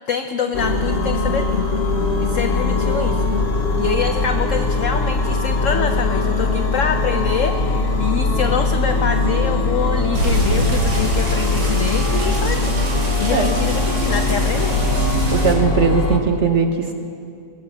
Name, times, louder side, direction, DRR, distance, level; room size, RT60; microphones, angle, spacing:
voice 1, 0.0-1.7 2.2-3.4 3.8-12.7 13.2-14.8, left 6 dB, 85° left, 7 dB, 0.6 m, -25 dB
sound 1, 0.5-16.2, left 3 dB, 45° left, 1.3 m, -20 dB
sound 2, 10.1-15.5, right 1 dB, 70° right, 2.7 m, -25 dB
voice 2, 15.3-16.9, right 5 dB, 50° right, 4 dB, 0.9 m, -19 dB
20.5 x 7.6 x 7.2 m, 2.4 s
omnidirectional pair, 2.0 m